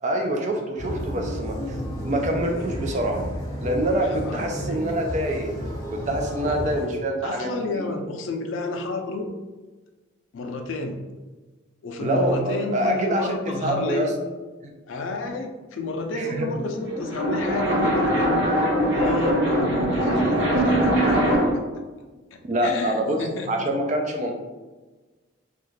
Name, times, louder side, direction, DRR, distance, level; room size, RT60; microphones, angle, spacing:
voice 1, 0.0-3.2 3.6-5.5 5.9-7.5 7.7-7.8 12.0-14.1 14.6-14.7 16.1-16.5 22.4-24.4, right 1 dB, 35° right, 2 dB, 0.3 m, -26 dB
sound 1, 0.8-6.9, equal, 20° left, 0.6 m, -32 dB
voice 2, 4.0-4.8 6.4-6.6 7.2-9.3 10.3-11.0 11.8-14.1 14.9-18.5 18.9-21.6 22.3-23.7, left 2 dB, 80° left, 4 dB, 0.4 m, -31 dB
sound 2, 16.8-21.6, right 1 dB, 60° right, 0.7 m, -22 dB
2.4 x 2.2 x 3.1 m, 1.2 s
head